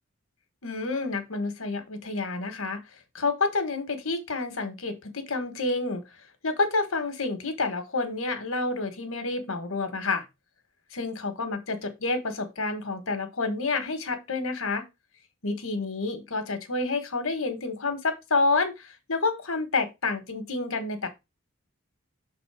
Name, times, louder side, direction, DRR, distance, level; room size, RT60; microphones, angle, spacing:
voice 1, 0.6-6.0 6.4-10.2 10.9-14.9 15.4-21.1, left 3 dB, 75° left, 1.4 m, -29 dB
6.3 x 3.9 x 4.8 m
head